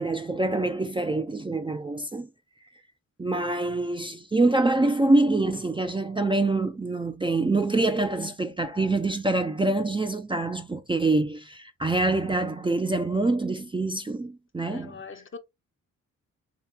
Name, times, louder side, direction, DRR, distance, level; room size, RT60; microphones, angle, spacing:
voice 1, 0.0-2.3 3.2-15.0, right 2 dB, 15° right, 0.5 m, -25 dB
voice 2, 14.7-15.4, left 4 dB, 35° left, 0.7 m, -42 dB
3.2 x 2.9 x 3.4 m
supercardioid pair, 55°, 34 cm